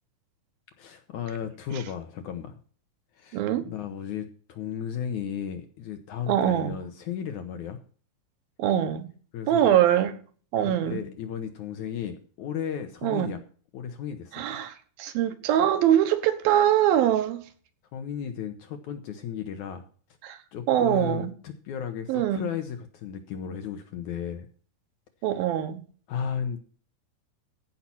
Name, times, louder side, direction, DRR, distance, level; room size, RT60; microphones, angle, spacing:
voice 1, 0.8-2.6 3.1-7.8 9.3-9.8 10.6-13.4 13.7-14.4 17.9-19.8 20.5-24.5 26.1-26.6, left 8 dB, 70° left, 2.0 m, -34 dB
voice 2, 3.3-3.7 6.3-6.8 8.6-9.1 9.5-10.2 10.5-11.0 13.0-13.4 14.3-17.4 20.2-20.4 20.7-21.3 22.1-22.5 25.2-25.8, right 11 dB, 75° right, 2.8 m, -23 dB
15.0 x 5.8 x 5.8 m
omnidirectional pair, 4.3 m